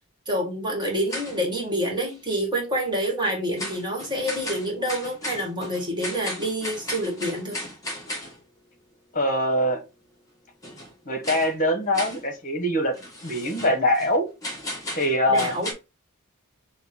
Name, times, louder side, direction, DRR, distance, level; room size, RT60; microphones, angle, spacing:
voice 1, 0.2-7.6 15.3-15.7, right 1 dB, 20° right, 1.7 m, -27 dB
sound 1, 0.8-1.6 2.1-2.2 3.6-8.4 10.6-10.9 11.2-11.6 11.9-12.3 12.9-14.2 14.4-15.7, left 1 dB, 15° left, 1.4 m, -35 dB
voice 2, 9.1-9.8 11.0-12.9 13.2-14.3 14.9-15.6, left 1 dB, 40° left, 1.2 m, -23 dB
5.4 x 2.4 x 3.6 m
head